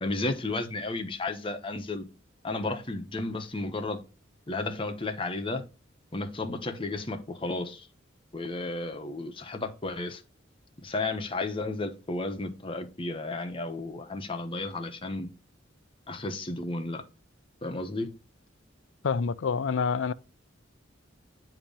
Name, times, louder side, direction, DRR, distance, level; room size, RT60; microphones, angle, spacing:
voice 1, 0.0-2.1 2.4-4.0 4.5-5.7 6.1-7.9 8.3-10.2 10.8-15.3 16.1-17.0 17.6-18.1, left 2 dB, 25° left, 0.9 m, -33 dB
voice 2, 19.0-20.1, left 5 dB, 70° left, 0.4 m, -27 dB
8.7 x 2.9 x 5.2 m
head